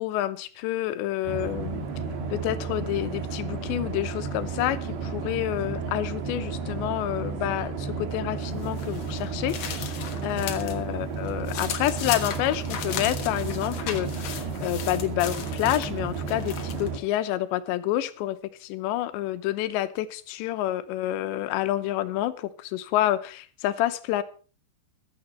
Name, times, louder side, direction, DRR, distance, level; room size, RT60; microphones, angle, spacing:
voice 1, 0.0-1.8 2.3-24.2, left 14 dB, 85° left, 13 dB, 3.1 m, -28 dB
sound 1, 1.2-17.0, right 5 dB, 70° right, 3.8 m, -32 dB
sound 2, 8.6-10.8 11.1-16.9, left 8 dB, 70° left, 1.5 m, -36 dB
15.0 x 12.5 x 4.3 m, 0.38 s
omnidirectional pair, 5.1 m